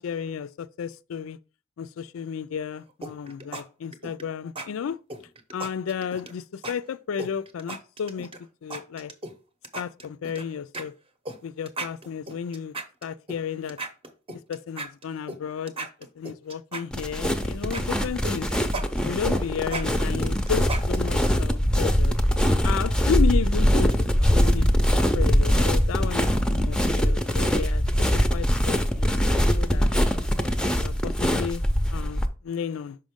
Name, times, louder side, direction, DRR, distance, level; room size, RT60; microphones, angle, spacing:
voice 1, 0.0-1.4 1.8-5.0 5.5-8.3 8.6-9.1 9.8-10.9 11.4-12.7 13.0-13.8 14.5-15.9 16.2-18.5 19.0-22.2 22.6-24.7 25.1-27.8 28.1-29.3 29.5-29.9 30.6-31.6 31.9-33.0, left 7 dB, 75° left, 0.4 m, -32 dB
sound 1, 3.0-3.6 3.9-4.2 4.6-4.7 5.1-6.3 6.6-6.7 7.2-8.4 8.7-9.3 9.6-10.4 10.7-10.8 11.3-11.4 11.7-13.4 13.7-15.4 15.7-17.3 17.6-21.2, right 2 dB, 25° right, 0.8 m, -35 dB
sound 2, 16.9-32.3, equal, 5° left, 0.5 m, -22 dB
5.7 x 5.1 x 3.6 m
head